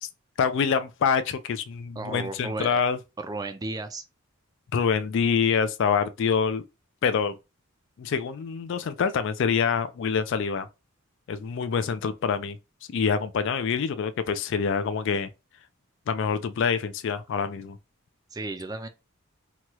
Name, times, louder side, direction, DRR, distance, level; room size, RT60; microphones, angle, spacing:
voice 1, 0.4-3.0 4.7-6.6 7.0-7.3 8.0-10.7 11.3-12.6 12.9-15.3 16.1-17.8, left 6 dB, 60° left, 0.3 m, -26 dB
voice 2, 2.0-2.8 3.2-4.0 18.3-18.9, right 2 dB, 15° right, 0.3 m, -34 dB
2.9 x 2.3 x 2.9 m
head